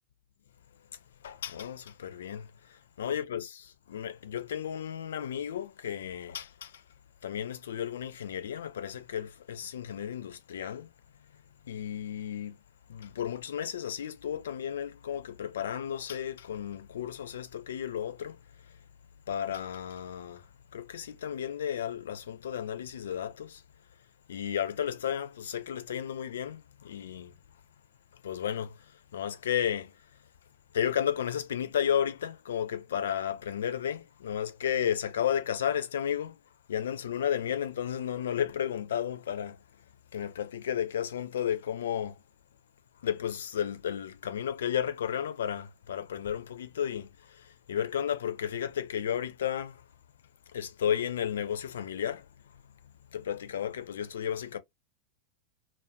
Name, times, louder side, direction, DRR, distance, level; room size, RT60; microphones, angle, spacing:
voice 1, 1.2-6.8 7.2-10.9 11.7-12.6 12.9-18.4 19.3-23.6 24.3-27.3 28.2-28.9 29.1-29.9 30.7-36.4 36.7-39.6 40.1-42.2 43.0-49.8 50.5-52.3 53.1-54.6, left 9 dB, 65° left, 0.4 m, -33 dB
2.4 x 2.1 x 2.6 m
figure-of-eight pair, 90°, 0 cm